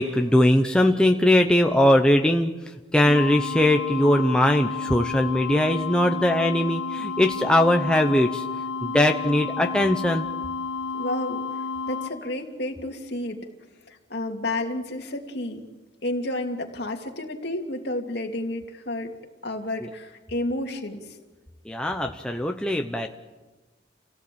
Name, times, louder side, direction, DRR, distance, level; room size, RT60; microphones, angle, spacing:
voice 1, 0.0-2.5 2.9-8.4 8.8-10.3 21.7-23.1, left 1 dB, 5° left, 3 dB, 0.8 m, -20 dB
sound 1, 3.0-12.1, left 4 dB, 75° left, 2.7 m, -31 dB
voice 2, 10.9-13.4 13.9-15.7 16.0-19.1 19.4-21.2, left 1 dB, 55° left, 2 dB, 2.8 m, -31 dB
28.5 x 17.5 x 8.7 m, 1.2 s
head